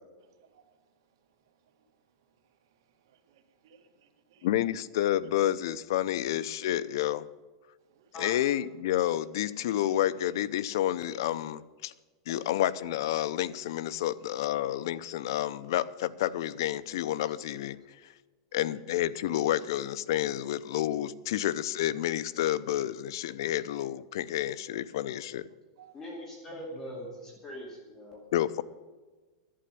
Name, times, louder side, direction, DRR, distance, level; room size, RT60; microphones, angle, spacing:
voice 1, 0.2-4.8 5.2-5.3 7.8-8.2 12.3-12.5 17.2-17.3 18.5-18.6 24.8-25.2 25.8-26.0 26.5-26.6 27.5-27.6, right 9 dB, 70° right, 5 dB, 1.9 m, -64 dB
voice 2, 4.4-7.3 8.2-11.9 12.3-17.8 18.5-25.5 28.3-28.6, left 12 dB, 65° left, 16 dB, 0.6 m, -29 dB
voice 3, 25.9-28.2, equal, 15° left, -1 dB, 2.3 m, -42 dB
11.5 x 8.7 x 8.3 m, 1.3 s
supercardioid pair, 160°, 2 cm